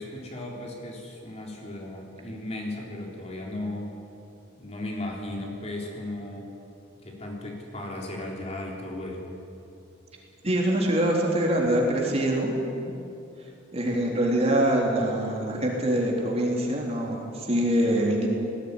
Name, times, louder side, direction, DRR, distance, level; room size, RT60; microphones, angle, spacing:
voice 1, 0.0-4.0 4.6-6.5 7.0-9.3, left 1 dB, 35° left, -1 dB, 3.7 m, -36 dB
voice 2, 10.4-12.9 13.7-18.3, right 1 dB, 35° right, -1 dB, 3.8 m, -24 dB
19.5 x 17.0 x 9.9 m, 2.8 s
head